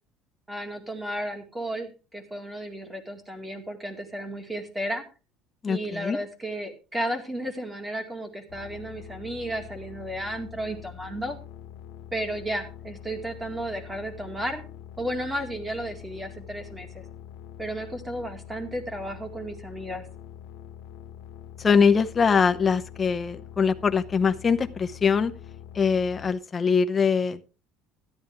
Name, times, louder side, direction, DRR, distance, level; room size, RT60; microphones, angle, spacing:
voice 1, 0.5-5.0 5.7-11.4 12.1-14.6 15.0-16.9 17.6-20.1, right 1 dB, 10° right, 5 dB, 2.2 m, -33 dB
voice 2, 5.6-6.2 21.6-25.3 25.7-27.4, left 6 dB, 20° left, 8 dB, 0.8 m, -23 dB
sound 1, 8.5-26.3, left 10 dB, 75° left, 1.3 m, -44 dB
13.0 x 11.0 x 3.5 m, 0.31 s
cardioid pair, 160°, 0 cm